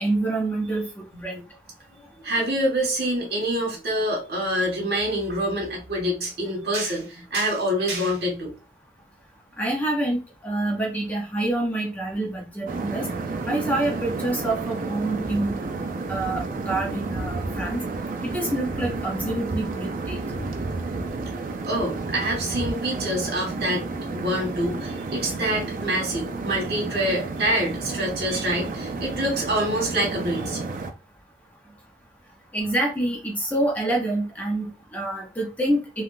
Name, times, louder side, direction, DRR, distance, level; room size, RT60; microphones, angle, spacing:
voice 1, 0.0-1.4 9.6-13.1 13.5-15.6 16.1-17.8 18.2-20.5 32.5-36.0, right 1 dB, 10° left, -1 dB, 0.5 m, -27 dB
voice 2, 2.2-8.5 21.7-30.6, right 1 dB, 65° right, -1 dB, 1.4 m, -26 dB
sound 1, 12.7-30.9, right 3 dB, 50° right, 0.4 m, -31 dB
3.4 x 2.3 x 2.4 m, 0.33 s
head